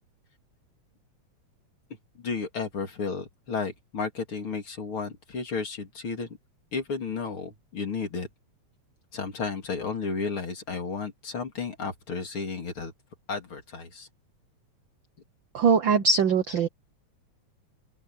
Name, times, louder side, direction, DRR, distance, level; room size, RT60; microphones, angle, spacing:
voice 1, 2.2-6.4 6.7-8.3 9.1-12.9 13.3-14.1, left 4 dB, 45° left, 3.5 m, -33 dB
voice 2, 15.5-16.7, right 5 dB, 65° right, 1.2 m, -21 dB
open air
omnidirectional pair, 3.3 m